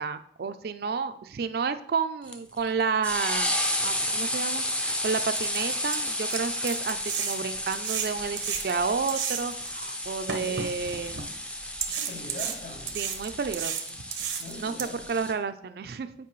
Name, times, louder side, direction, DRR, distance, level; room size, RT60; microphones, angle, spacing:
voice 1, 0.0-3.5 3.8-11.2 12.9-14.0 14.6-16.1, right 5 dB, 55° right, 0.4 m, -31 dB
sound 1, 2.3-15.3, left 1 dB, 5° left, 0.4 m, -32 dB
sound 2, 4.3-4.4 4.9-5.0 5.4-9.7 10.3-11.2 11.8-14.8, right 8 dB, 90° right, 0.8 m, -33 dB
voice 2, 11.9-12.9 14.4-15.0, left 2 dB, 65° left, 2.6 m, -42 dB
8.3 x 4.8 x 3.1 m
head